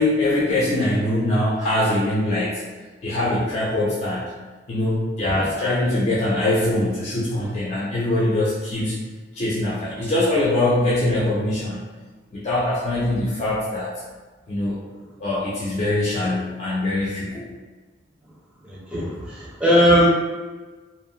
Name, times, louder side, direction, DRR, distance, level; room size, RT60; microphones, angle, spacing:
voice 1, 0.0-2.6 3.0-4.3 4.7-9.0 9.3-11.8 12.3-13.9 14.5-14.8 15.2-17.4, left 1 dB, 35° left, -8 dB, 0.4 m, -22 dB
voice 2, 18.6-20.1, equal, 5° right, -7 dB, 0.6 m, -19 dB
2.6 x 2.0 x 2.6 m, 1.3 s
head